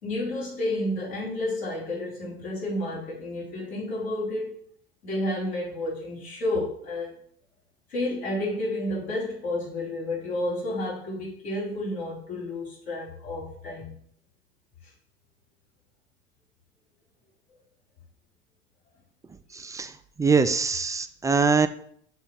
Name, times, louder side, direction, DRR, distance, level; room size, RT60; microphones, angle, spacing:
voice 1, 0.0-4.5 5.0-7.1 7.9-13.9, left 1 dB, 80° left, -8 dB, 3.2 m, -31 dB
voice 2, 19.5-19.9 20.2-21.7, right 5 dB, 10° right, 9 dB, 0.3 m, -23 dB
6.1 x 3.7 x 5.7 m, 0.64 s
figure-of-eight pair, 70°, 32 cm